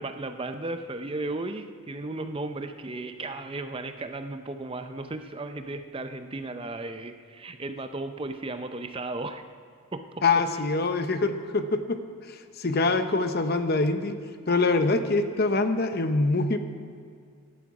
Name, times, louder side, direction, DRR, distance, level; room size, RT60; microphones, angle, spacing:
voice 1, 0.0-9.4 9.9-10.4, right 2 dB, 25° right, 8 dB, 0.5 m, -35 dB
voice 2, 10.2-12.0 12.6-14.2 14.5-16.6, left 3 dB, 45° left, 8 dB, 0.8 m, -24 dB
16.5 x 11.5 x 4.8 m, 2.2 s
head